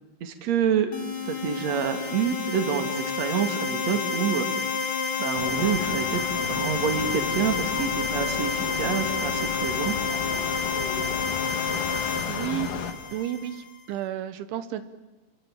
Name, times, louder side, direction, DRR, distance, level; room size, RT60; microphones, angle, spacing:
voice 1, 0.2-0.9 1.2-4.5 5.2-6.2 6.5-9.9, right 7 dB, 45° right, 7 dB, 3.0 m, -27 dB
sound 1, 0.9-13.6, left 5 dB, 25° left, 2.5 m, -29 dB
sound 2, 5.3-12.9, left 7 dB, 55° left, 2.9 m, -34 dB
voice 2, 12.3-12.7 13.1-14.8, right 12 dB, 80° right, 11 dB, 3.5 m, -32 dB
29.0 x 21.5 x 9.0 m, 1.1 s
omnidirectional pair, 5.5 m